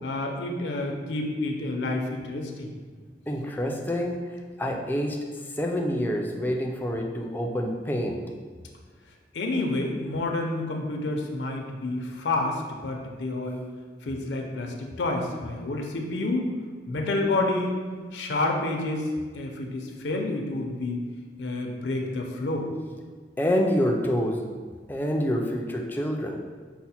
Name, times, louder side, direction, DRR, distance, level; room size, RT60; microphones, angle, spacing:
voice 1, 0.0-2.7 9.3-13.6 14.0-16.5 16.9-17.9 18.1-19.1 19.3-21.0 21.4-22.7, left 2 dB, 80° left, 2 dB, 0.5 m, -29 dB
voice 2, 3.3-5.2 5.5-8.2 23.4-24.5 24.9-26.4, equal, 10° left, 1 dB, 0.3 m, -27 dB
5.6 x 2.1 x 4.2 m, 1.5 s
head